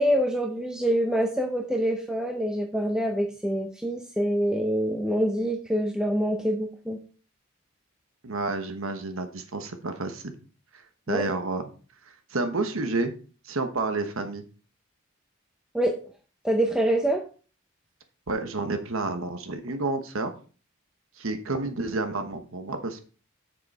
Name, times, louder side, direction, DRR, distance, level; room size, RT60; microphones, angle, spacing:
voice 1, 0.0-7.0 11.1-11.2 15.7-16.0 16.4-17.2, equal, 5° right, 3 dB, 0.7 m, -25 dB
voice 2, 8.2-10.3 10.7-10.8 11.1-11.7 12.3-13.1 13.4-14.4 18.3-20.3 21.2-23.0, right 3 dB, 70° right, 7 dB, 1.1 m, -30 dB
8.3 x 6.8 x 4.1 m, 0.38 s
head